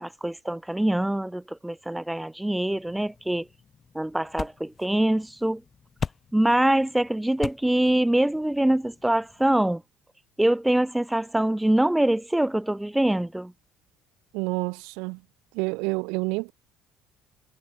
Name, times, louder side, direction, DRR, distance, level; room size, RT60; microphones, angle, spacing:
voice 1, 0.0-3.5 3.9-5.6 6.3-9.8 10.4-13.5, right 1 dB, 5° right, 0.7 m, -24 dB
sound 1, 2.7-9.8, left 6 dB, 25° left, 1.2 m, -41 dB
voice 2, 14.3-15.2 15.5-16.5, right 29 dB, 80° right, 2.2 m, -28 dB
cardioid pair, 150°, 0 cm